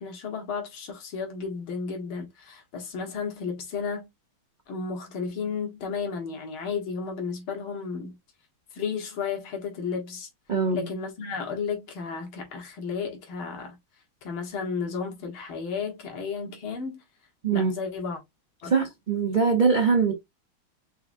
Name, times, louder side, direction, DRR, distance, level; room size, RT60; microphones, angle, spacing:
voice 1, 0.0-4.1 4.7-8.2 8.7-10.3 10.7-13.8 14.2-17.0 17.5-18.2 18.6-18.7, left 5 dB, 85° left, 2.1 m, -33 dB
voice 2, 10.5-10.8 17.4-17.7 18.7-20.1, right 5 dB, 75° right, 0.4 m, -22 dB
4.7 x 3.7 x 2.5 m
omnidirectional pair, 2.2 m